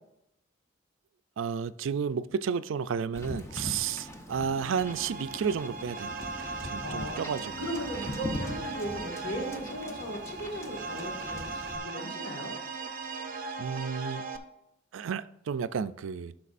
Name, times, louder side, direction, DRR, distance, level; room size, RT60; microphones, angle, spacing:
voice 1, 1.4-6.3 6.6-7.5 8.0-8.1 13.6-14.3 14.9-16.4, right 6 dB, 75° right, 0.4 m, -32 dB
Wind / Boat Water vehicle, 3.1-11.8, left 1 dB, 15° left, 0.7 m, -41 dB
sound 1, 4.8-14.4, right 4 dB, 45° right, 0.7 m, -38 dB
voice 2, 6.8-7.2 7.6-12.6, equal, 65° left, 1.9 m, -37 dB
12.0 x 5.9 x 2.5 m
head